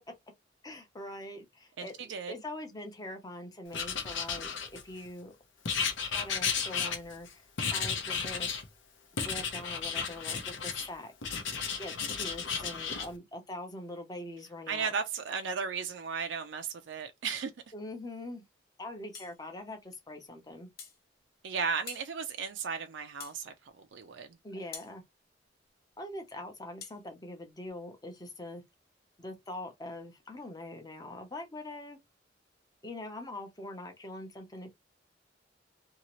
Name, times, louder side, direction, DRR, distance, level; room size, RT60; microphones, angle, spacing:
voice 1, 0.6-5.3 6.1-8.6 9.2-11.1 11.8-14.9 17.7-18.4 18.8-20.7 24.4-25.0 26.0-28.6 29.2-32.0 32.8-34.7, left 1 dB, 20° left, 0.7 m, -43 dB
voice 2, 1.8-2.3 14.7-17.5 21.4-24.3, right 6 dB, 75° right, 0.4 m, -35 dB
Writing, 3.7-5.1 5.6-7.3 7.6-8.6 9.2-10.9 11.2-13.1, left 6 dB, 85° left, 0.8 m, -33 dB
sound 1, 19.1-19.4 20.8-21.0 21.9-22.1 23.2-23.4 24.7-24.9 26.8-27.0, left 6 dB, 55° left, 0.8 m, -45 dB
2.9 x 2.7 x 2.9 m
head